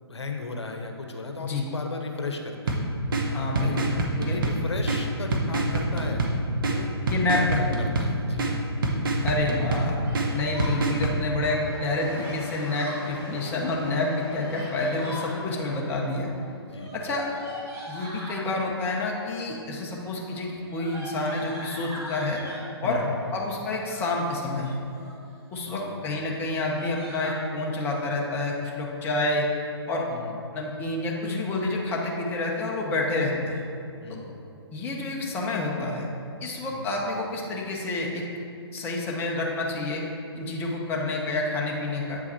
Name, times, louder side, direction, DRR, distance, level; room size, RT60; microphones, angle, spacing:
voice 1, 0.0-2.8 3.6-3.8 4.2-6.3 6.7-6.9 7.2-7.5 7.8-8.5 16.7-16.9 22.8-23.1 25.7-25.9 30.1-30.3 34.0-34.3 36.7-36.9, left 3 dB, 85° left, 3 dB, 0.8 m, -35 dB
sound 1, 2.6-11.2, right 1 dB, 55° right, 1.0 m, -27 dB
voice 2, 3.3-3.9 4.3-4.4 7.1-7.9 9.2-10.0 10.3-16.3 16.9-17.3 17.9-22.4 22.8-23.0 23.3-24.8 25.5-29.5 29.9-30.0 30.5-33.6 34.7-36.1 36.4-38.2 38.7-40.0 40.3-42.2, left 2 dB, 15° left, -2 dB, 0.8 m, -28 dB
Yell, 10.0-10.8 12.2-13.1 14.2-15.3 16.7-18.5 19.3-19.7 20.0-22.7 23.6-24.2 24.7-25.3 25.7-25.8 26.0-26.2 26.5-27.4, equal, 20° right, 1.3 m, -41 dB
sound 2, 11.5-16.6, left 2 dB, 50° left, 1.3 m, -40 dB
7.9 x 4.7 x 4.3 m, 2.6 s
figure-of-eight pair, 135°, 14 cm